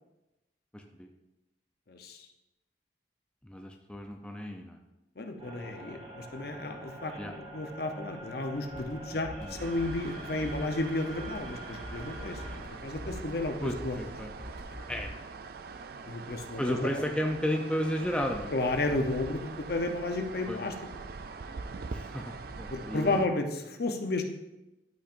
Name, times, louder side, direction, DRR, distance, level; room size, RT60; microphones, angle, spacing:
voice 1, 0.7-1.1 3.4-4.8 7.2-7.3 9.4-9.6 13.6-14.3 14.9-15.1 16.6-18.5 20.5-20.6 21.9-23.2, equal, 5° left, 2 dB, 0.5 m, -33 dB
voice 2, 1.9-2.3 5.2-12.4 12.8-13.9 16.0-17.0 18.5-20.7 22.7-24.2, left 2 dB, 55° left, 5 dB, 0.8 m, -32 dB
sound 1, 5.4-12.6, right 1 dB, 35° right, 2.7 m, -46 dB
sound 2, 8.7-15.1, equal, 75° left, 2.4 m, -45 dB
sound 3, 9.6-23.3, right 4 dB, 50° right, 0.4 m, -43 dB
12.0 x 5.8 x 2.6 m, 0.98 s
head